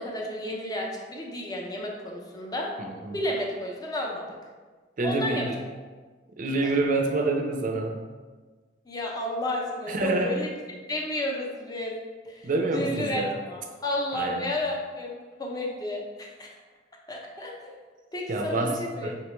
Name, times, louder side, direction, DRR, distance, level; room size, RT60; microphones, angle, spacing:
voice 1, 0.0-2.7 3.1-4.3 5.0-5.4 8.9-10.5 10.9-12.0 12.2-16.5 17.1-17.7 18.1-19.1, left 1 dB, 20° left, -1 dB, 0.6 m, -32 dB
voice 2, 2.8-3.2 5.0-5.5 6.4-8.0 9.9-10.4 12.4-13.4 14.1-14.5 18.3-19.1, right 2 dB, 45° right, 3 dB, 0.4 m, -27 dB
5.6 x 2.2 x 3.0 m, 1.4 s
head